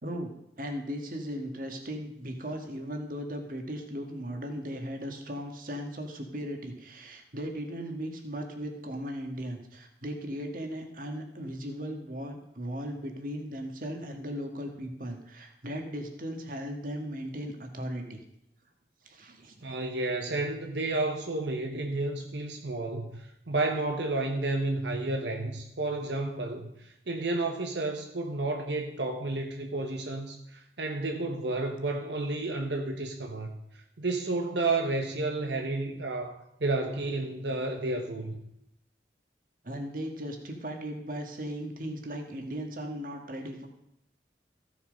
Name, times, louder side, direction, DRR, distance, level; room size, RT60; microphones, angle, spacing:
voice 1, 0.0-18.2 19.0-19.8 39.6-43.7, equal, 50° right, 4 dB, 1.8 m, -37 dB
voice 2, 19.6-33.5 34.0-38.4, right 2 dB, 80° right, 3 dB, 1.3 m, -31 dB
15.0 x 7.1 x 5.2 m, 0.77 s
head